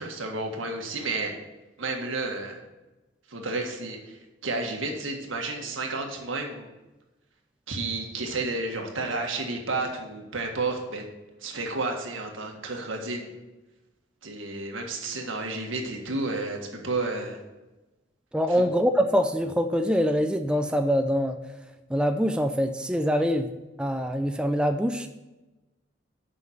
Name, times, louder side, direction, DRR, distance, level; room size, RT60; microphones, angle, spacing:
voice 1, 0.0-1.3 1.8-2.6 3.3-4.2 4.4-6.7 7.7-11.1 11.4-13.3 14.2-17.4 18.5-18.6, right 3 dB, 90° right, 2 dB, 1.7 m, -31 dB
voice 2, 18.3-21.4 21.9-23.5 23.8-25.1, equal, 5° right, 6 dB, 0.4 m, -24 dB
7.6 x 5.8 x 7.3 m, 1.1 s
head